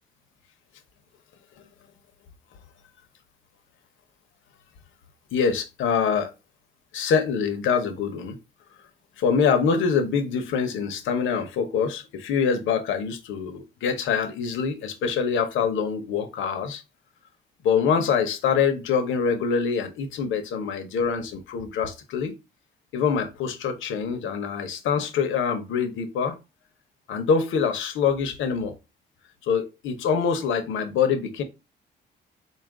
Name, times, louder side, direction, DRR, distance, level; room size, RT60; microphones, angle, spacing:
voice 1, 5.3-6.3 6.9-8.4 9.2-16.8 17.6-22.3 22.9-26.4 27.1-28.8 29.4-31.4, left 6 dB, 80° left, 0.8 m, -25 dB
4.1 x 2.4 x 3.6 m
cardioid pair, 90°, 20 cm